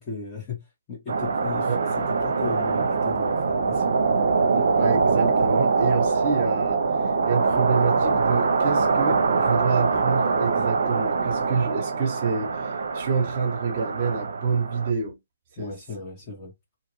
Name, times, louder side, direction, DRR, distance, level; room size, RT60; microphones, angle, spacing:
voice 1, 0.0-3.9 15.6-16.5, left 4 dB, 25° left, 1.4 m, -36 dB
sound 1, 1.1-14.9, right 4 dB, 70° right, 0.7 m, -23 dB
voice 2, 4.5-6.8 7.2-15.2 15.6-15.8, right 5 dB, 45° right, 0.9 m, -27 dB
2.8 x 2.5 x 3.0 m
hypercardioid pair, 150°, 0 cm